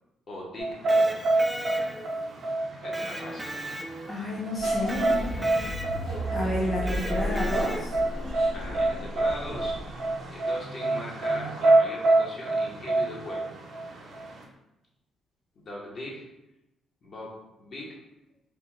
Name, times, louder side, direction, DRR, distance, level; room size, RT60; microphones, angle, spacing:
voice 1, 0.3-1.2 2.8-3.8 6.8-7.0 8.5-13.5 15.6-16.3 17.0-18.0, left 1 dB, 50° left, -3 dB, 0.9 m, -40 dB
sound 1, 0.6-14.4, right 2 dB, 60° right, 0.6 m, -27 dB
Electric guitar, 0.7-2.2 2.9-4.3 4.9-6.2 6.9-8.1, right 1 dB, 5° right, 0.3 m, -38 dB
voice 2, 4.1-5.3 6.3-8.0, left 1 dB, 25° left, -5 dB, 0.7 m, -30 dB
sound 2, 4.6-10.1, equal, 90° left, 0.9 m, -34 dB
3.3 x 2.1 x 3.0 m, 0.92 s
cardioid pair, 90°, 0 cm